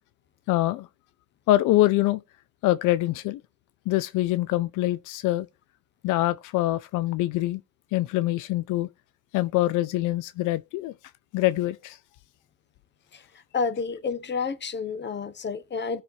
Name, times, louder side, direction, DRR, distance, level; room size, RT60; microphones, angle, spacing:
voice 1, 0.5-0.9 1.5-2.2 2.6-3.4 3.9-5.5 6.0-7.6 7.9-8.9 9.3-10.9 11.3-12.0, left 16 dB, 90° left, 0.5 m, -24 dB
voice 2, 13.5-16.0, left 5 dB, 35° left, 1.1 m, -30 dB
16.5 x 5.9 x 2.7 m
cardioid pair, 90°, 30 cm